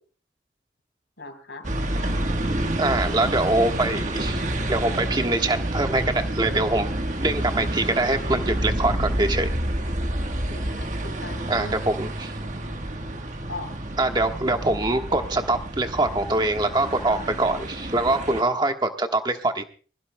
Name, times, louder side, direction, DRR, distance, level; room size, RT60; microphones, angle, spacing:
voice 1, 1.2-1.7 10.5-11.8 13.5-13.8, left 2 dB, 85° left, 5 dB, 4.1 m, -38 dB
sound 1, 1.6-18.4, right 1 dB, 40° right, 1.4 m, -29 dB
voice 2, 2.8-4.4 4.7-6.9 7.2-9.5 11.5-12.3 14.0-19.6, right 2 dB, 25° right, 5 dB, 1.4 m, -24 dB
24.5 x 15.5 x 2.3 m, 0.39 s
head